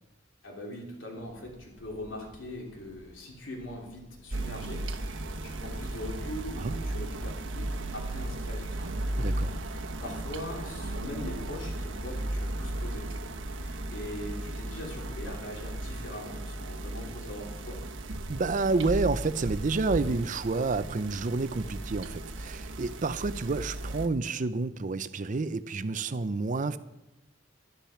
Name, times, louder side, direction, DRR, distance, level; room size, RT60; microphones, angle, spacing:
voice 1, 0.4-9.0 10.0-13.1 13.6-17.8, left 1 dB, 80° left, -1 dB, 3.1 m, -41 dB
sound 1, 1.2-16.2, left 1 dB, 35° left, 1.2 m, -56 dB
sound 2, 4.3-24.1, right 1 dB, 85° right, 1.1 m, -35 dB
voice 2, 8.8-9.5 18.3-26.8, right 3 dB, 40° right, 14 dB, 0.5 m, -29 dB
12.0 x 10.5 x 5.8 m, 0.94 s
head